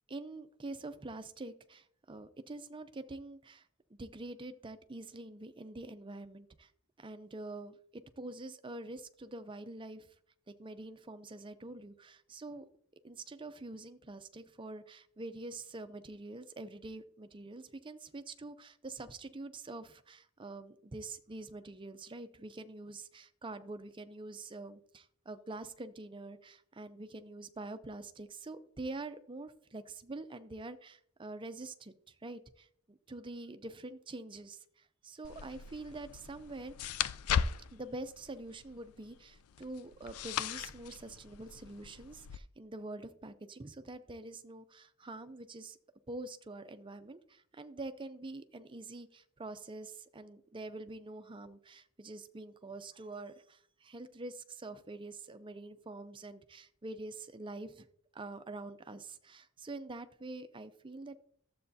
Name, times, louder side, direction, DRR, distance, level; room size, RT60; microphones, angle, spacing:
voice 1, 0.1-6.7 7.0-10.1 10.5-12.6 13.0-37.0 37.7-45.8 46.1-57.9 58.1-61.2, right 2 dB, 20° right, 10 dB, 0.5 m, -46 dB
sound 1, 35.2-42.4, left 7 dB, 75° left, 0.4 m, -38 dB
12.5 x 7.6 x 2.7 m, 0.63 s
head